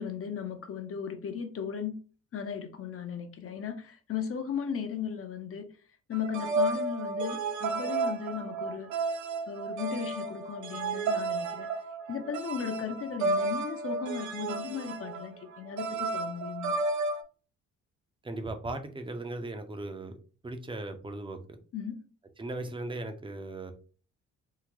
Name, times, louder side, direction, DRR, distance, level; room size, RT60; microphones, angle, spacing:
voice 1, 0.0-1.9 2.3-5.7 6.1-8.9 9.5-11.7 12.1-16.7 21.7-21.9, left 7 dB, 50° left, 0.7 m, -36 dB
sound 1, 6.1-17.2, right 3 dB, 75° right, 0.7 m, -32 dB
voice 2, 18.2-20.2 20.4-21.6 22.4-23.7, right 2 dB, 15° right, 0.6 m, -37 dB
3.8 x 2.1 x 3.0 m
cardioid pair, 90°, 30 cm